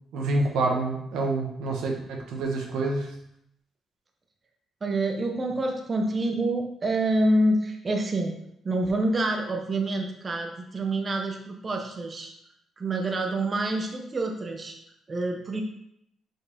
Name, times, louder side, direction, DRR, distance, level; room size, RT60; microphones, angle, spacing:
voice 1, 0.1-3.1, right 2 dB, 85° right, 0 dB, 1.2 m, -27 dB
voice 2, 4.8-8.3 8.6-12.3 12.8-14.8 15.1-15.6, right 2 dB, 35° right, 3 dB, 0.8 m, -27 dB
5.5 x 4.7 x 4.2 m, 0.76 s
cardioid pair, 90°, 0 cm